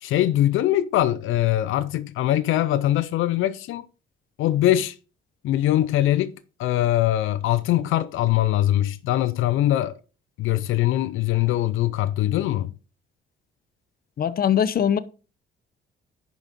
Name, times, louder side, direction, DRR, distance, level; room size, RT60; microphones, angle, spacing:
voice 1, 0.0-3.8 4.4-4.9 5.4-6.3 6.6-9.9 10.4-12.7, left 13 dB, 85° left, 0.6 m, -22 dB
voice 2, 14.2-15.0, left 9 dB, 50° left, 0.7 m, -21 dB
11.0 x 5.3 x 4.1 m
cardioid pair, 90°, 20 cm